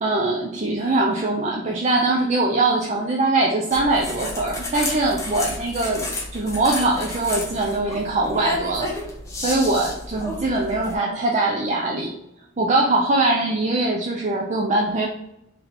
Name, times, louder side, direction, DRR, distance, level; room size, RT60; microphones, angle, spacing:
voice 1, 0.0-8.9 9.4-12.2 12.6-15.1, right 2 dB, 35° right, -1 dB, 0.4 m, -22 dB
sound 1, 3.7-10.9, left 2 dB, 15° left, 0.7 m, -31 dB
3.9 x 2.8 x 3.4 m, 0.82 s
head